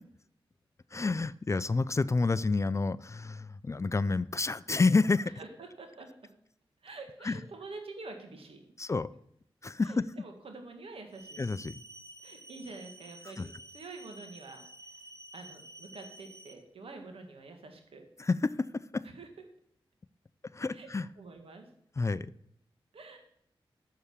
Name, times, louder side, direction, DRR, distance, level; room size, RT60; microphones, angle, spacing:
voice 1, 0.9-5.3 7.2-7.4 8.8-9.1 9.6-10.1 11.4-11.7 13.4-13.5 18.2-19.0 20.5-21.1 22.0-22.3, left 3 dB, 30° left, 0.4 m, -29 dB
voice 2, 5.4-6.1 6.8-8.7 9.8-11.4 12.2-14.6 14.9-15.0 15.3-18.0 19.1-19.3 20.7-20.9 21.2-21.7 22.9-23.2, right 3 dB, 75° right, 1.8 m, -47 dB
sound 1, 11.1-16.5, right 1 dB, 30° right, 1.2 m, -51 dB
6.7 x 6.5 x 7.1 m
cardioid pair, 45°, 10 cm